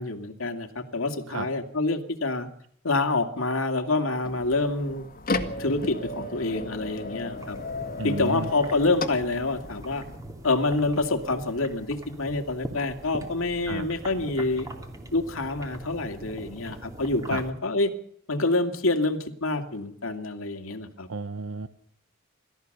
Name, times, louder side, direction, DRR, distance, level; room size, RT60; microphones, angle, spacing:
voice 1, 0.0-2.5 2.8-5.1 5.6-7.6 8.0-10.0 10.4-14.7 15.1-17.9 18.3-21.1, left 2 dB, 85° left, 6 dB, 2.5 m, -27 dB
sound 1, 4.2-10.2, left 2 dB, 45° left, 2.0 m, -34 dB
sound 2, 7.4-17.5, right 1 dB, 15° right, 3.0 m, -42 dB
voice 2, 8.0-8.5 13.7-13.9 17.3-17.4 21.1-21.7, right 3 dB, 90° right, 10 dB, 1.0 m, -32 dB
28.0 x 14.0 x 6.7 m, 0.66 s
head